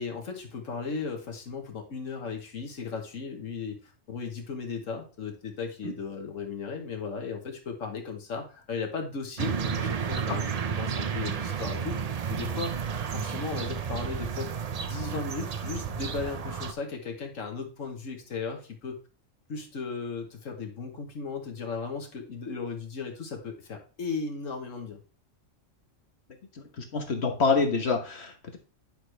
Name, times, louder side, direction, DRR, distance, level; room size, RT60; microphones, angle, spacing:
voice 1, 0.0-10.4 10.7-14.5 14.8-19.0 19.5-25.0, left 4 dB, 85° left, 3 dB, 1.7 m, -36 dB
sound 1, 9.4-16.7, right 7 dB, 45° right, 0.5 m, -32 dB
voice 2, 26.5-28.6, left 4 dB, 60° left, 4 dB, 1.3 m, -27 dB
10.0 x 6.2 x 3.3 m, 0.37 s
omnidirectional pair, 1.3 m